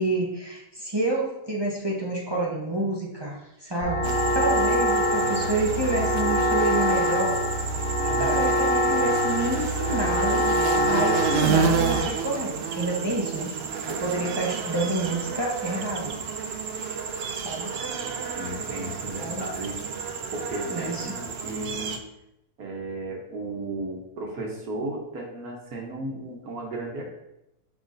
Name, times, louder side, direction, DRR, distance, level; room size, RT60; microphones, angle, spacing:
voice 1, 0.0-4.0 4.3-7.4 8.0-10.5 10.8-13.5 13.9-16.1 17.4-17.7 19.2-19.4 20.7-21.2, right 2 dB, 20° right, -3 dB, 0.8 m, -28 dB
sound 1, 3.8-12.0, equal, 20° left, 1.5 m, -24 dB
sound 2, 4.0-22.0, right 6 dB, 85° right, 0.5 m, -30 dB
voice 2, 18.3-19.8 20.3-20.9 21.2-22.0 22.6-27.0, right 2 dB, 70° right, -1 dB, 1.4 m, -34 dB
10.5 x 3.5 x 2.6 m, 0.85 s
omnidirectional pair, 1.7 m